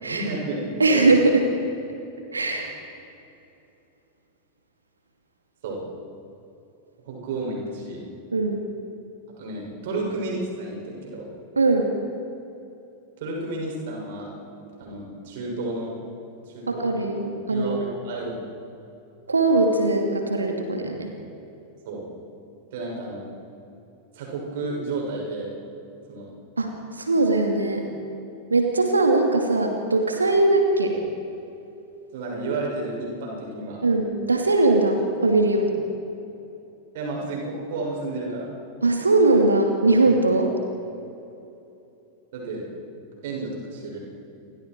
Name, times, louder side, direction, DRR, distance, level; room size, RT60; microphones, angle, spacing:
voice 1, 0.0-1.1 5.6-5.8 7.0-8.0 9.4-11.3 13.2-14.4 14.8-16.0 16.5-16.9 17.5-18.4 21.9-22.0 22.7-23.3 24.1-25.5 26.1-26.3 32.1-33.8 36.9-38.5 42.3-42.7 43.2-44.0, right 2 dB, 55° right, -1 dB, 7.0 m, -31 dB
voice 2, 0.8-1.4 2.3-2.7 8.3-8.6 11.6-11.9 16.7-17.7 19.3-21.1 26.6-27.8 28.5-31.0 33.8-35.7 38.8-40.5, right 2 dB, 75° right, 3 dB, 2.4 m, -20 dB
29.5 x 24.5 x 4.8 m, 2.8 s
figure-of-eight pair, 90°, 0 cm